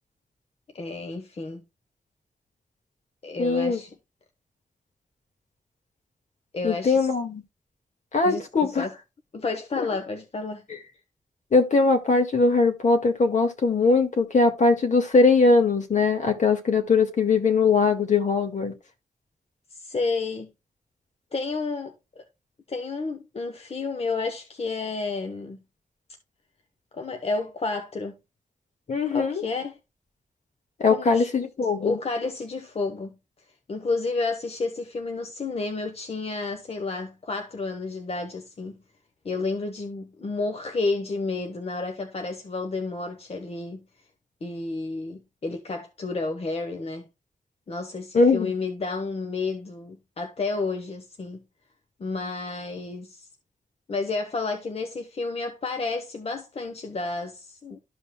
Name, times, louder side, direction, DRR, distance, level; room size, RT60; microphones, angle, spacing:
voice 1, 0.7-1.6 3.2-3.9 6.5-7.1 8.2-8.9 9.3-10.6 19.7-20.5 21.3-22.2 22.7-25.6 26.9-28.1 29.1-29.8 30.9-31.3 31.8-33.1 33.7-38.8 39.2-43.8 44.4-47.1 47.7-51.4 52.0-53.3 53.9-57.8, left 3 dB, 45° left, 0.9 m, -31 dB
voice 2, 3.4-3.8 6.6-7.4 8.1-8.9 9.7-9.8 11.5-18.7 28.9-29.4 30.8-32.0 48.1-48.5, left 4 dB, 65° left, 1.7 m, -21 dB
13.0 x 5.3 x 2.2 m
wide cardioid pair, 85°, 14 cm